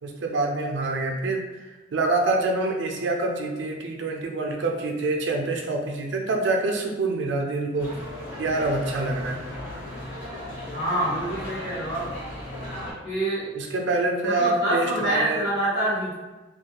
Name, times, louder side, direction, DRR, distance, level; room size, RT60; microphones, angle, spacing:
voice 1, 0.0-7.9 8.4-9.4 13.5-15.5, right 2 dB, 70° right, 2 dB, 0.4 m, -26 dB
sound 1, 7.8-12.9, left 1 dB, 90° left, 0.8 m, -36 dB
voice 2, 10.7-12.0 13.0-13.5 14.2-16.1, right 1 dB, 60° left, -12 dB, 1.0 m, -26 dB
2.3 x 2.2 x 2.8 m, 1.2 s
head